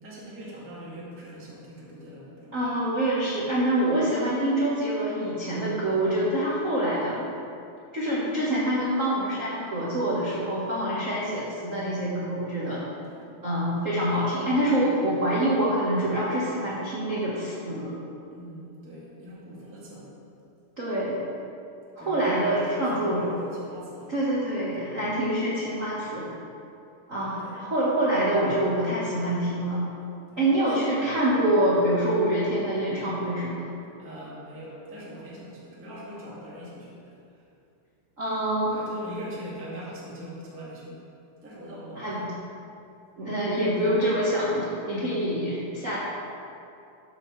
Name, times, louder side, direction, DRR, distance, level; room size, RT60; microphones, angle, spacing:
voice 1, 0.0-2.6 10.9-11.1 12.9-13.2 17.6-17.7 18.3-20.2 22.0-24.2 27.4-27.6 30.1-30.5 34.0-37.4 38.7-41.0 41.4-42.4, equal, 5° right, -7 dB, 1.1 m, -42 dB
voice 2, 2.5-7.2 7.9-12.8 13.4-17.9 20.8-21.2 22.0-23.3 24.1-26.3 27.1-29.8 30.4-33.7 38.2-38.8 42.0-42.2 43.2-46.0, right 1 dB, 60° right, -8 dB, 0.8 m, -26 dB
12.5 x 7.6 x 3.2 m, 2.6 s
omnidirectional pair, 3.7 m